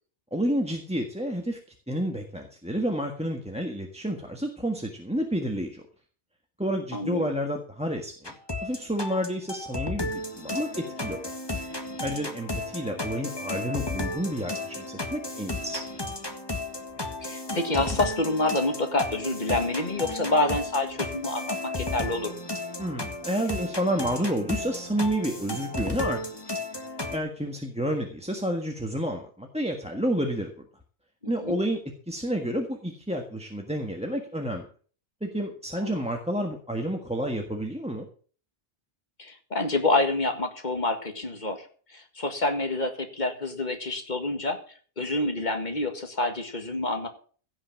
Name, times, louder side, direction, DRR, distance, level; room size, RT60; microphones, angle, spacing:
voice 1, 0.3-1.6 1.9-5.8 6.6-8.3 8.6-11.2 12.0-15.8 22.8-26.2 26.5-26.6 27.1-30.5 31.3-34.6 35.2-38.1, equal, 5° right, 3 dB, 1.5 m, -30 dB
voice 2, 6.9-7.3 17.2-22.4 31.2-31.6 35.8-36.0 39.2-41.7 41.9-44.6 45.0-47.1, left 2 dB, 40° left, 6 dB, 2.0 m, -27 dB
sound 1, 8.2-27.2, left 2 dB, 20° left, 1.7 m, -34 dB
16.0 x 5.9 x 7.4 m, 0.43 s
omnidirectional pair, 1.1 m